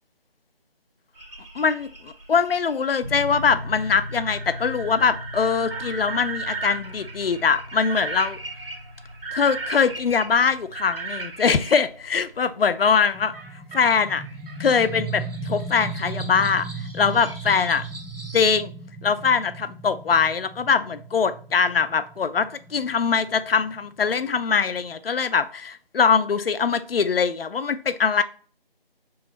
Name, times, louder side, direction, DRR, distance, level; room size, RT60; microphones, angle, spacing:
sound 1, 1.1-11.7 13.3-18.5, right 3 dB, 65° right, 1.7 m, -37 dB
voice 1, 1.6-8.4 9.3-13.3 13.7-14.2 14.6-16.7 16.9-17.8 18.3-18.7 19.0-28.2, left 6 dB, 75° left, 0.5 m, -22 dB
sound 2, 3.0-19.8, left 1 dB, 40° right, 0.9 m, -41 dB
sound 3, 13.1-24.6, right 3 dB, ahead, 0.3 m, -37 dB
4.6 x 2.5 x 3.0 m
figure-of-eight pair, 175°, 30 cm